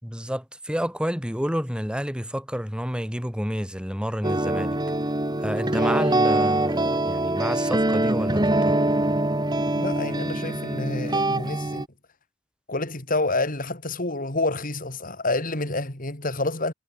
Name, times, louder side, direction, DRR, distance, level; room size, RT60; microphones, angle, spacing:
voice 1, 0.0-4.8 5.4-8.7, equal, 5° right, 4.8 m, -29 dB
sound 1, 4.2-11.8, right 1 dB, 20° right, 2.5 m, -24 dB
voice 2, 9.7-11.9 12.7-16.7, left 2 dB, 45° left, 4.0 m, -28 dB
head